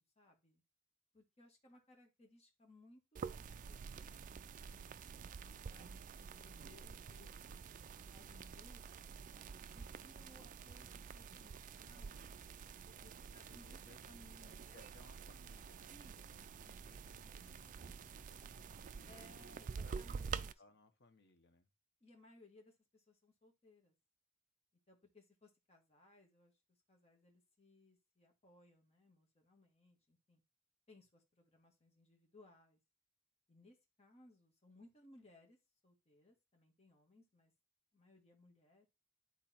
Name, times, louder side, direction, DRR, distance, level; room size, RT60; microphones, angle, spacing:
voice 1, 0.2-0.6 1.1-5.1 5.4-7.6 8.1-9.1 9.7-14.8 15.9-16.1 19.1-20.5 22.0-23.9 24.9-26.5 26.9-30.4 30.9-32.8 33.5-35.6 35.8-37.5 37.9-38.9, left 2 dB, 30° left, 1 dB, 1.9 m, -65 dB
sound 1, 3.2-20.5, right 6 dB, 35° right, 0.3 m, -49 dB
voice 2, 13.4-14.0 14.7-19.2 19.7-21.7, left 3 dB, 50° left, 7 dB, 1.1 m, -66 dB
10.5 x 3.9 x 4.4 m, 0.25 s
head